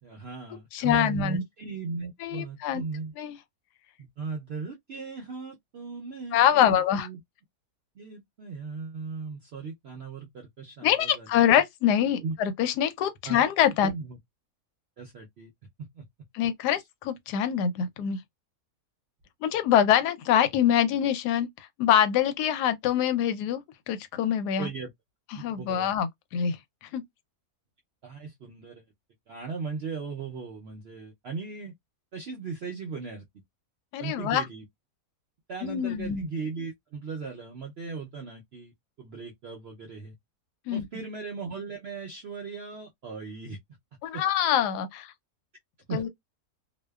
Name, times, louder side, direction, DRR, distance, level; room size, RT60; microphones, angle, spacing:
voice 1, 0.0-3.1 4.0-7.2 7.9-11.4 12.2-12.3 13.2-13.4 13.8-14.2 15.0-15.5 15.8-16.0 24.6-24.9 25.3-25.9 28.0-28.8 29.3-31.7 32.1-33.2 34.0-34.6 35.5-38.7 39.0-40.1 40.7-43.6 44.1-44.2 45.9-46.1, right 4 dB, 70° right, 0.6 m, -37 dB
voice 2, 0.7-1.4 2.2-2.8 3.2-3.3 6.3-7.1 10.8-13.9 16.3-18.2 19.4-21.5 21.8-23.6 23.9-24.7 25.3-26.6 26.9-27.0 33.9-34.4 35.6-36.3 40.7-40.9 44.0-45.1 45.9-46.1, left 9 dB, 90° left, 1.1 m, -24 dB
2.6 x 2.1 x 2.2 m
omnidirectional pair, 1.7 m